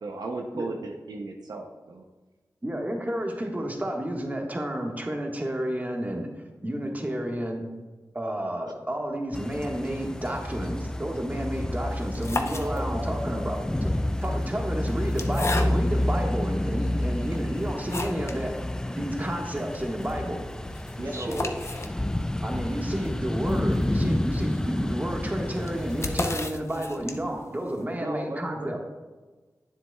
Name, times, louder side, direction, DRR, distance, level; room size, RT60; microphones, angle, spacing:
voice 1, 0.0-2.0, right 3 dB, 80° right, 2 dB, 0.6 m, -35 dB
voice 2, 2.6-6.3 6.6-7.7 8.1-13.9 14.2-18.6 18.9-20.4 21.2-21.5 22.4-28.8, right 1 dB, 25° right, 1 dB, 1.5 m, -31 dB
sound 1, 9.3-26.4, left 1 dB, 10° left, 0.3 m, -29 dB
sound 2, 12.0-13.2 14.0-16.1 16.7-16.8 17.3-18.4 18.8-18.9 19.1-19.2 19.6-27.5, left 2 dB, 40° left, 0.7 m, -35 dB
voice 3, 12.6-13.4 21.0-21.5 28.0-28.8, right 1 dB, 45° right, 2 dB, 1.0 m, -35 dB
9.2 x 7.4 x 2.3 m, 1.3 s
cardioid pair, 45°, 7 cm